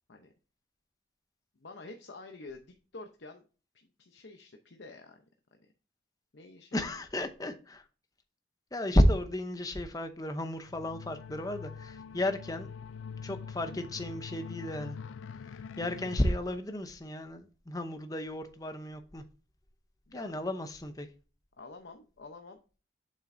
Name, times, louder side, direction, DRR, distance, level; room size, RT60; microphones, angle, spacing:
voice 1, 1.6-3.4 3.7-5.2 5.5-5.6 6.3-6.8 20.1-20.2 21.6-22.6, left 3 dB, 70° left, 0.8 m, -48 dB
voice 2, 6.7-7.8 8.7-12.7 13.2-15.0 15.4-19.2 20.1-21.1, left 1 dB, 20° left, 0.7 m, -32 dB
sound 1, 10.7-16.3, left 6 dB, 90° left, 0.4 m, -44 dB
7.4 x 5.8 x 2.6 m
head